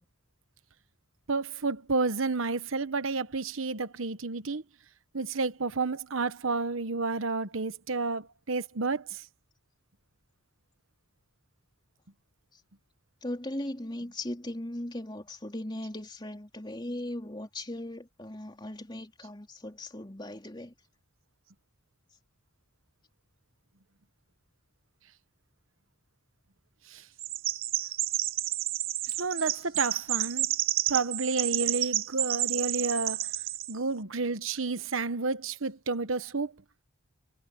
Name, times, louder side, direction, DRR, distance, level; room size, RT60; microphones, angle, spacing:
voice 1, 1.3-4.6 5.1-9.2 26.9-27.0 29.2-30.5 30.9-33.3 33.7-36.5, right 3 dB, 80° right, 1.1 m, -30 dB
voice 2, 13.2-20.8 27.8-27.9, left 1 dB, 20° left, 3.6 m, -38 dB
Chirp tweet, 27.2-33.7, right 14 dB, 45° right, 0.6 m, -30 dB
head